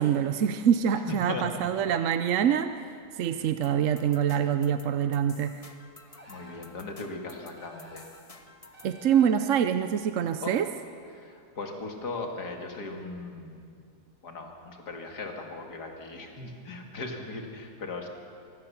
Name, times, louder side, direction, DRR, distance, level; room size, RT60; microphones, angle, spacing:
voice 1, 0.0-5.5 8.8-10.7, right 8 dB, 60° right, 9 dB, 1.0 m, -25 dB
voice 2, 1.1-1.4 6.3-8.1 10.4-10.5 11.1-13.7 14.2-18.1, left 3 dB, 85° left, 3 dB, 2.8 m, -38 dB
sound 1, 3.6-9.0, left 3 dB, 25° left, 1.1 m, -52 dB
sound 2, 6.1-6.8 7.6-8.3 8.7-9.6, right 1 dB, 20° right, 3.5 m, -53 dB
24.5 x 17.5 x 7.1 m, 2.3 s
omnidirectional pair, 1.7 m